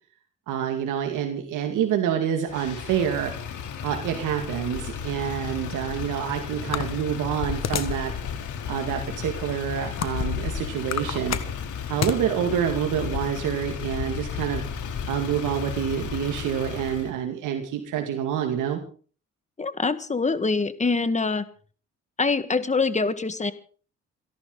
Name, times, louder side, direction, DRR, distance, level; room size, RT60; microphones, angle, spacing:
voice 1, 0.5-3.3 3.8-8.1 8.7-11.4 11.9-14.6 15.1-18.8, right 9 dB, 90° right, 4 dB, 2.3 m, -27 dB
Motor vehicle (road), 2.5-17.1, left 7 dB, 80° left, 3.4 m, -33 dB
sound 1, 6.7-8.0 8.6-8.7 9.4-10.4 10.8-12.2, left 9 dB, 60° left, 1.7 m, -29 dB
voice 2, 19.6-21.5 22.2-23.5, left 4 dB, 25° left, 12 dB, 1.7 m, -24 dB
28.0 x 11.5 x 4.0 m, 0.41 s
cardioid pair, 90°, 30 cm